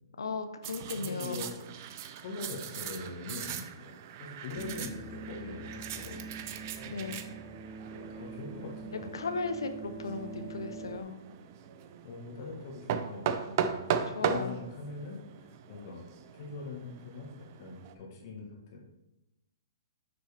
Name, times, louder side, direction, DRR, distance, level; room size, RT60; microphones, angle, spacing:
voice 1, 0.2-1.5 6.8-7.2 9.1-11.2 14.2-14.6, left 4 dB, 90° left, 9 dB, 0.8 m, -36 dB
sound 1, 0.6-17.9, right 8 dB, 45° right, 0.6 m, -39 dB
voice 2, 0.9-1.5 1.8-1.9 2.2-3.9 4.2-6.2 7.0-7.1 7.9-9.1 12.0-16.1 16.3-18.8, left 3 dB, 50° left, -1 dB, 1.5 m, -42 dB
sound 2, 4.5-11.0, right 3 dB, 5° left, 0.5 m, -44 dB
7.2 x 6.1 x 3.4 m, 0.94 s
hypercardioid pair, 140°, 2 cm